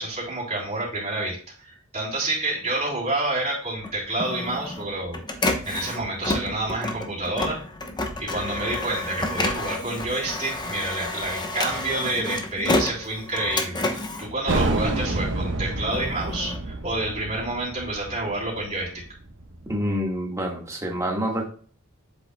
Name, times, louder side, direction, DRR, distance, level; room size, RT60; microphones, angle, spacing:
voice 1, 0.0-7.6 8.2-13.8 14.2-18.9, right 2 dB, 30° right, -5 dB, 3.4 m, -28 dB
Printer, 3.8-15.2 15.7-17.5, left 2 dB, 20° left, 0.9 m, -30 dB
sound 1, 14.5-19.8, right 2 dB, 60° right, 1.1 m, -29 dB
voice 2, 19.7-21.4, equal, 15° right, 0 dB, 1.6 m, -27 dB
7.9 x 6.4 x 2.2 m, 0.43 s
head